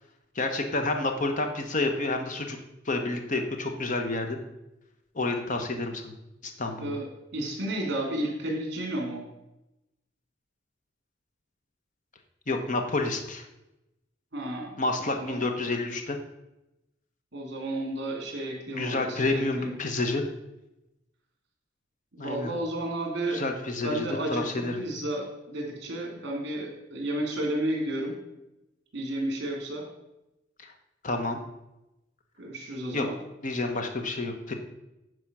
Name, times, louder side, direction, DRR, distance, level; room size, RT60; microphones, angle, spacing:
voice 1, 0.3-2.6 2.8-4.4 5.1-6.1 6.4-6.9 12.5-13.5 14.8-16.2 18.7-20.2 22.2-22.5 23.3-24.8 30.6-30.7 31.0-31.4 32.9-33.1 33.4-34.5, left 2 dB, 40° left, 5 dB, 0.9 m, -29 dB
voice 2, 7.3-9.2 14.3-15.4 17.3-19.7 22.1-23.4 23.8-28.1 28.9-29.8 32.4-33.1, right 1 dB, 55° right, 1 dB, 2.9 m, -32 dB
9.9 x 4.8 x 6.1 m, 0.91 s
head